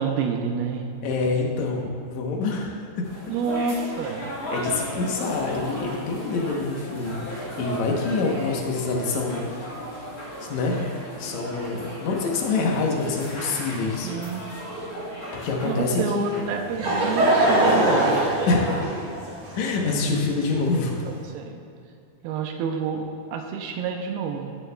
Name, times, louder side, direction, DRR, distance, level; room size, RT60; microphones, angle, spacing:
voice 1, 0.0-0.9 3.3-4.3 14.0-14.5 15.6-18.3 21.0-21.6 22.2-24.5, right 5 dB, 80° right, 4 dB, 2.3 m, -28 dB
voice 2, 1.0-3.0 4.5-9.7 10.4-14.1 15.3-16.4 18.5-18.7 19.5-20.9, left 3 dB, 75° left, 0 dB, 1.6 m, -26 dB
sound 1, 3.0-18.8, right 1 dB, 55° left, 1.0 m, -36 dB
Laughter / Crowd, 16.4-21.1, right 1 dB, 45° right, 1.8 m, -23 dB
18.0 x 6.9 x 2.3 m, 2.5 s
omnidirectional pair, 4.7 m